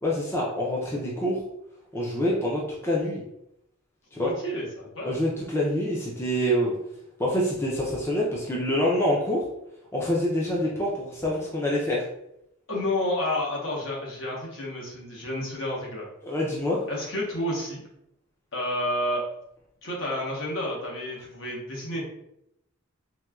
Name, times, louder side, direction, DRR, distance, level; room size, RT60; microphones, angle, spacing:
voice 1, 0.0-1.4 1.9-3.2 4.1-4.3 5.0-6.7 7.2-9.4 9.9-12.0 16.2-16.8, left 1 dB, 10° left, -4 dB, 0.4 m, -26 dB
voice 2, 4.2-5.2 12.7-16.1 16.9-17.8 18.5-19.2 19.8-22.0, left 1 dB, 65° left, -3 dB, 0.9 m, -30 dB
4.1 x 2.2 x 2.3 m, 0.80 s
head